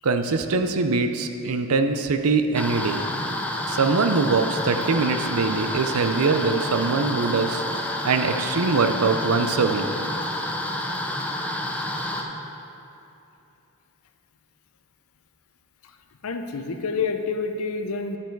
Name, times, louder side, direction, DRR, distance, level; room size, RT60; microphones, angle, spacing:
voice 1, 0.0-3.0 3.7-7.6 8.0-9.8, right 4 dB, 80° right, 8 dB, 0.6 m, -23 dB
sound 1, 2.5-12.2, left 1 dB, 5° left, 0.6 m, -29 dB
voice 2, 16.2-18.2, left 4 dB, 85° left, 6 dB, 0.6 m, -28 dB
10.0 x 7.0 x 4.6 m, 2.9 s
head